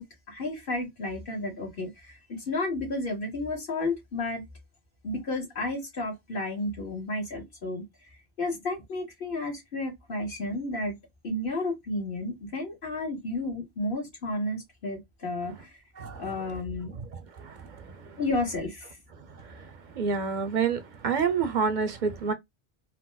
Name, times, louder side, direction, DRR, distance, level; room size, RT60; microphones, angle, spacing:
voice 1, 0.0-4.5 5.0-7.8 8.4-11.0 11.2-15.5 16.2-16.9 18.2-18.9, left 2 dB, 55° left, 1.8 m, -32 dB
voice 2, 17.1-17.6 20.0-22.3, right 6 dB, 55° right, 0.7 m, -28 dB
4.1 x 2.1 x 2.2 m
omnidirectional pair, 1.1 m